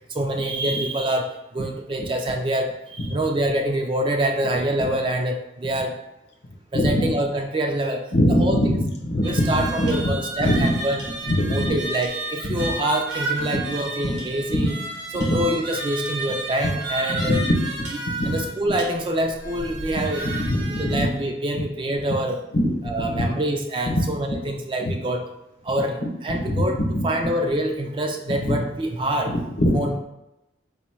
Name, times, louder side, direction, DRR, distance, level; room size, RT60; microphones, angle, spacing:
voice 1, 0.1-5.9 6.7-8.0 8.3-8.7 9.2-11.1 11.5-14.8 15.1-17.4 18.2-20.3 20.8-22.4 22.8-25.2 25.6-29.4 29.7-30.0, right 1 dB, 25° right, 4 dB, 0.3 m, -26 dB
voice 2, 6.7-7.1 8.1-8.8 9.0-10.1 10.4-10.8 11.3-11.7 12.4-12.7 13.5-13.6 14.0-14.2 14.5-14.6 15.3-15.4 17.1-17.9 18.2-18.4 20.0-21.1 22.5-22.7 23.0-23.3 23.9-24.0 24.8-24.9 26.0-26.6 26.9-27.0 28.4-28.5 29.2-29.8, equal, 65° left, 0 dB, 0.8 m, -23 dB
sound 1, 9.2-21.0, right 2 dB, 90° right, 1.4 m, -32 dB
4.0 x 2.2 x 4.3 m, 0.91 s
head